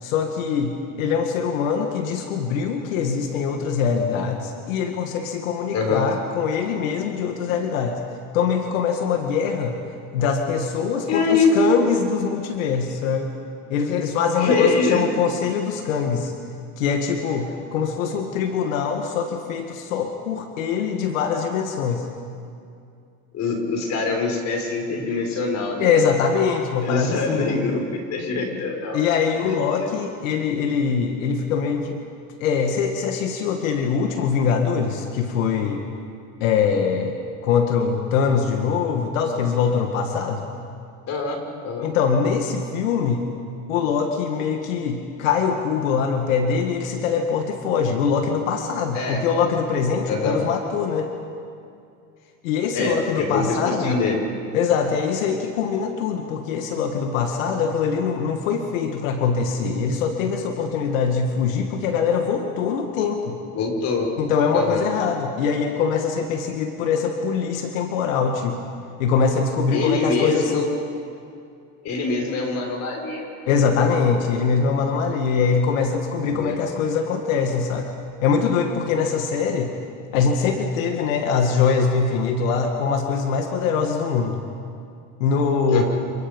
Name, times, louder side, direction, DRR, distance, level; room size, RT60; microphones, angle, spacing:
voice 1, 0.0-8.0 8.3-9.8 10.1-13.3 13.7-16.3 16.8-22.1 25.8-27.8 28.9-32.0 32.4-35.8 36.4-37.2 37.4-40.5 41.8-43.2 43.7-51.1 52.4-54.0 54.5-63.4 64.2-68.6 69.0-70.7 73.5-77.9 78.2-79.7 80.1-84.4 85.2-85.8, left 6 dB, 90° left, 4 dB, 2.1 m, -23 dB
voice 2, 11.1-11.5 14.4-15.0 23.3-25.9 26.8-29.1 29.4-29.9 41.1-41.4 41.6-41.9 48.9-49.2 50.1-50.4 52.7-54.2 63.5-64.1 64.5-64.9 69.7-70.7 71.8-73.3 76.2-76.6 85.7-85.8, left 4 dB, 45° left, 2 dB, 5.8 m, -24 dB
29.0 x 28.0 x 5.5 m, 2.4 s
supercardioid pair, 130°, 39 cm